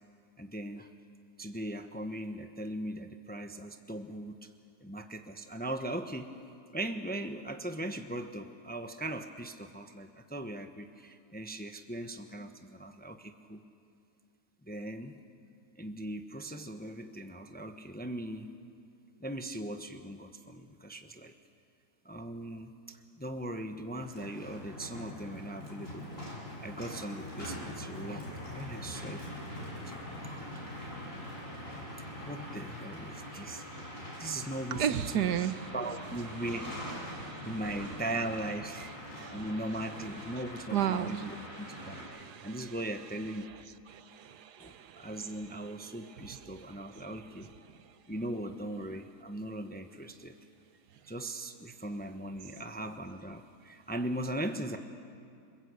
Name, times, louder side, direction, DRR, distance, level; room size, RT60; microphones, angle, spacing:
voice 1, 0.4-0.9 1.4-4.5 4.8-6.4 6.7-13.6 14.6-15.2 15.8-18.5 19.2-21.3 22.0-26.2 26.6-29.2 29.7-29.9 30.2-30.4 32.2-33.6 34.2-35.4 35.7-36.8 37.4-43.7 44.6-47.5 48.1-50.3 51.1-54.8, right 1 dB, 10° left, 7 dB, 0.8 m, -39 dB
sound 1, 24.0-42.0, left 1 dB, 50° left, 6.9 m, -43 dB
voice 2, 34.7-35.7 37.1-37.6 39.2-39.7 40.1-40.2 40.7-42.8 43.4-43.6 43.9-47.1 47.6-47.9, right 9 dB, 80° right, 12 dB, 1.4 m, -36 dB
28.5 x 21.0 x 8.2 m, 2.4 s
omnidirectional pair, 1.7 m